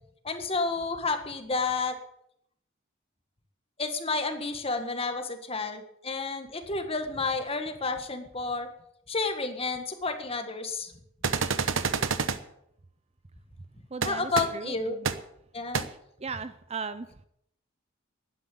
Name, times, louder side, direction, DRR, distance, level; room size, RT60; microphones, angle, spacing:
voice 1, 0.2-2.0 3.8-8.7 9.1-10.9 14.0-15.0 15.5-15.9, left 3 dB, 30° left, 7 dB, 1.7 m, -30 dB
sound 1, 11.2-12.4 14.0-14.1 14.3-14.4 15.0-15.1 15.7-15.8, right 5 dB, 70° right, 1.0 m, -27 dB
voice 2, 13.9-15.1 16.2-17.3, right 4 dB, 30° right, 12 dB, 0.6 m, -37 dB
12.0 x 10.0 x 8.5 m, 0.74 s
head